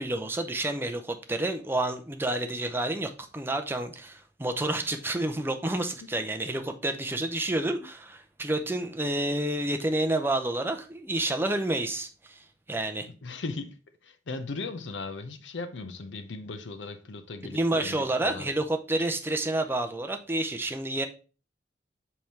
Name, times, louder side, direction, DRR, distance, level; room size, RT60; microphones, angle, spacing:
voice 1, 0.0-13.1 17.4-21.1, right 1 dB, 10° right, 0.6 m, -29 dB
voice 2, 13.2-13.8 14.0-18.5, left 3 dB, 80° left, 0.7 m, -38 dB
5.4 x 4.6 x 4.2 m
head